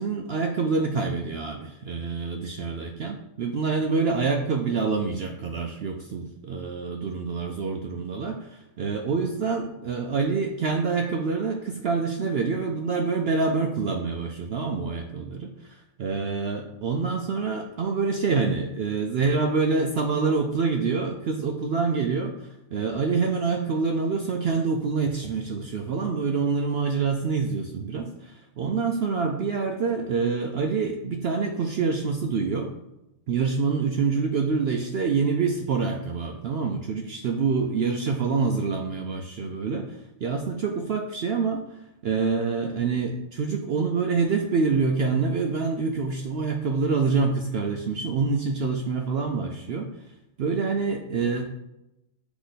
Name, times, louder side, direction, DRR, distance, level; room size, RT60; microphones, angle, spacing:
voice 1, 0.0-32.7 33.3-41.6 42.0-49.9 50.4-51.5, right 4 dB, 70° right, 4 dB, 0.5 m, -26 dB
8.1 x 3.0 x 4.0 m, 0.90 s
omnidirectional pair, 1.5 m